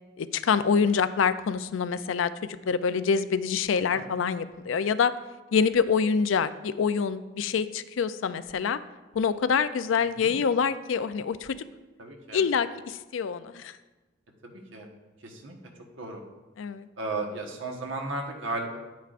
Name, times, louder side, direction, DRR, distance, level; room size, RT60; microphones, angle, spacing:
voice 1, 0.2-2.3 2.7-5.1 5.5-8.8 9.1-11.6 12.3-13.7 16.6-16.9, left 6 dB, 85° left, 13 dB, 0.4 m, -26 dB
voice 2, 12.0-12.4 14.4-14.9 15.2-15.5 16.0-16.2 17.0-18.8, right 2 dB, 85° right, 2 dB, 1.3 m, -35 dB
9.4 x 9.2 x 2.5 m, 1.2 s
head